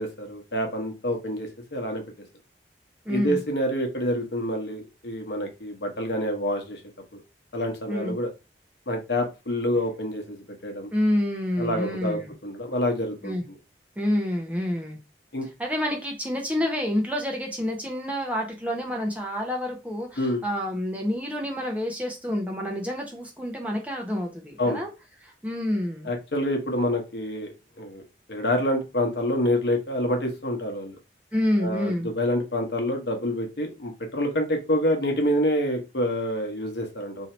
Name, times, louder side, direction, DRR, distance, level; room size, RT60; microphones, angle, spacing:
voice 1, 0.0-2.0 3.1-6.8 7.5-8.3 8.9-10.9 11.6-13.3 15.3-15.5 20.2-20.4 24.6-24.8 26.0-28.0 28.3-31.0 31.6-37.3, left 1 dB, 70° left, 3 dB, 1.0 m, -27 dB
voice 2, 3.1-3.4 7.9-8.2 10.9-12.3 13.2-13.4 14.0-15.0 15.6-24.9 25.2-26.1 31.3-32.1, left 1 dB, 10° right, 0 dB, 0.7 m, -28 dB
2.8 x 2.7 x 4.3 m, 0.27 s
head